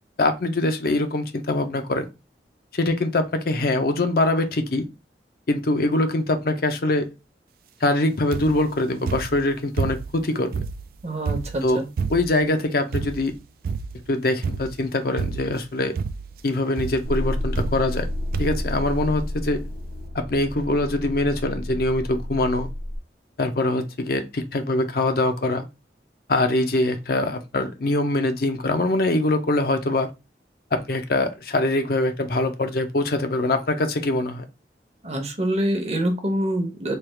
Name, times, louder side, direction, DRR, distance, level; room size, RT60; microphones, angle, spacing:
voice 1, 0.2-2.1 2.7-4.8 5.5-7.1 7.8-10.6 11.6-11.8 12.1-13.3 14.1-16.0 16.4-18.1 18.4-19.6 20.1-22.7 23.4-25.7 26.3-30.1 30.7-34.4, left 2 dB, 55° left, 0.6 m, -23 dB
sound 1, 8.3-8.7 9.1-10.2 10.5-12.5 12.9-13.4 13.6-14.1 14.4-14.8 15.2-15.7 16.0-16.4 16.8-17.1 17.6-18.1 18.3-18.7 19.4-19.5 19.7-19.8, right 5 dB, 55° right, 0.3 m, -29 dB
voice 2, 11.0-11.8 35.0-37.0, right 1 dB, 35° right, 0.8 m, -25 dB
sound 2, 17.0-23.0, left 1 dB, 80° left, 0.9 m, -30 dB
3.3 x 2.3 x 4.3 m
head